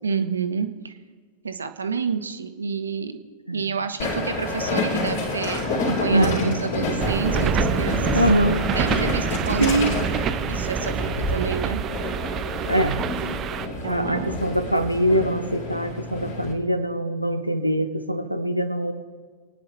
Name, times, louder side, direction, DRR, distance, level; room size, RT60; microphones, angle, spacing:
voice 1, 0.0-1.0 1.4-3.2 3.5-8.2 8.7-11.8 13.8-14.4, right 5 dB, 75° right, 8 dB, 0.9 m, -29 dB
Train, 4.0-16.5, left 2 dB, 55° left, 2.9 m, -28 dB
voice 2, 6.1-6.6 8.1-8.7 9.6-9.9 12.7-13.0 13.9-18.9, right 1 dB, 90° left, 11 dB, 0.9 m, -23 dB
sound 1, 7.0-13.7, right 10 dB, 30° right, 0.4 m, -27 dB
27.5 x 9.7 x 3.3 m, 1.5 s
figure-of-eight pair, 90°, 0 cm